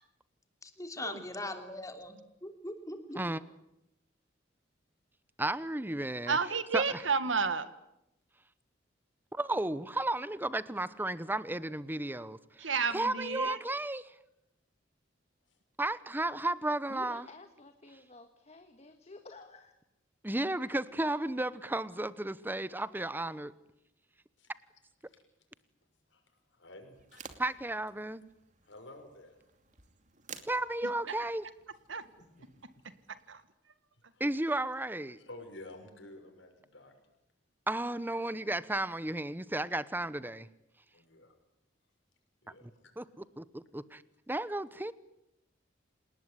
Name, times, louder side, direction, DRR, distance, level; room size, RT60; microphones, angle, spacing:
voice 1, 0.6-3.2, left 1 dB, 20° left, 3.1 m, -41 dB
voice 2, 5.4-6.4 6.7-7.0 9.3-14.1 15.8-17.3 20.2-23.5 27.4-28.2 30.5-31.5 34.2-35.2 37.7-40.5 42.6-42.7 43.0-44.0 44.3-44.9, right 1 dB, 10° right, 1.0 m, -33 dB
voice 3, 6.3-7.7 12.6-13.6 31.9-32.0 33.3-33.4, right 5 dB, 90° right, 1.8 m, -31 dB
voice 4, 16.9-19.7, left 2 dB, 35° left, 1.7 m, -51 dB
voice 5, 26.5-27.2 28.6-29.4 32.0-32.7 34.1-34.2 35.2-36.9 38.9-39.0 40.9-41.3 42.4-42.9, left 2 dB, 75° left, 6.4 m, -51 dB
sound 1, 26.9-33.3, right 6 dB, 40° right, 2.5 m, -54 dB
28.0 x 19.0 x 9.9 m
head